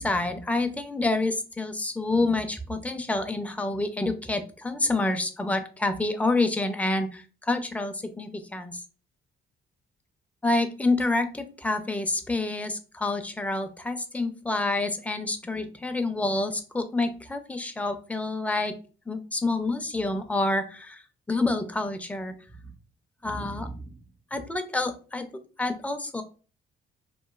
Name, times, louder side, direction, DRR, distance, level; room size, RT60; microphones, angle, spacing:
voice 1, 0.0-8.7 10.4-18.8 19.1-21.0 21.3-22.3 23.2-24.0 24.3-26.2, left 2 dB, 5° left, 7 dB, 0.4 m, -28 dB
3.0 x 2.3 x 2.3 m, 0.37 s
cardioid pair, 90°, 20 cm